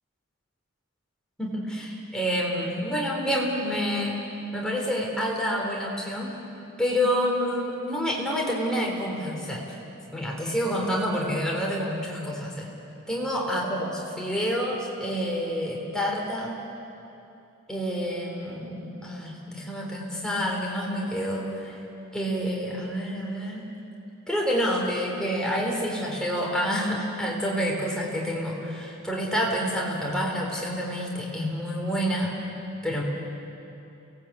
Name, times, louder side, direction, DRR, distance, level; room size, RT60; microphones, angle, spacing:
voice 1, 1.4-4.2 4.5-6.4 6.8-12.7 13.1-16.6 17.7-21.8 22.1-23.6 24.3-32.3 32.8-33.0, equal, 5° left, -2 dB, 3.8 m, -28 dB
28.5 x 19.0 x 8.5 m, 2.8 s
head